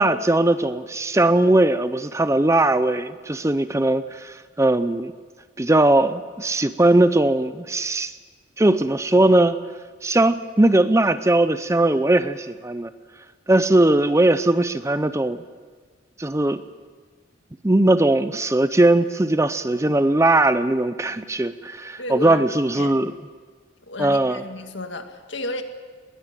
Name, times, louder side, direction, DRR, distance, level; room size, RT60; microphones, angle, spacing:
voice 1, 0.0-5.1 5.6-8.1 8.6-9.6 10.0-12.9 13.5-15.4 16.2-16.6 17.6-23.1 24.0-24.4, right 2 dB, 15° right, 12 dB, 0.6 m, -19 dB
voice 2, 22.0-22.4 22.7-23.0 23.9-25.6, left 1 dB, 65° left, 6 dB, 2.1 m, -32 dB
21.0 x 19.5 x 9.1 m, 1.5 s
head